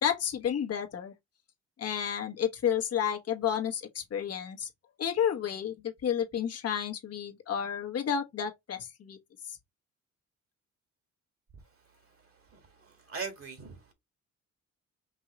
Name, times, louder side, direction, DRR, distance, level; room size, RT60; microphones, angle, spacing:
voice 1, 0.0-1.1 1.8-4.7 5.0-9.2 9.4-9.6, left 8 dB, 55° left, 1.3 m, -31 dB
voice 2, 12.5-13.9, right 5 dB, 45° right, 1.8 m, -41 dB
5.4 x 2.9 x 3.0 m
cardioid pair, 90°, 30 cm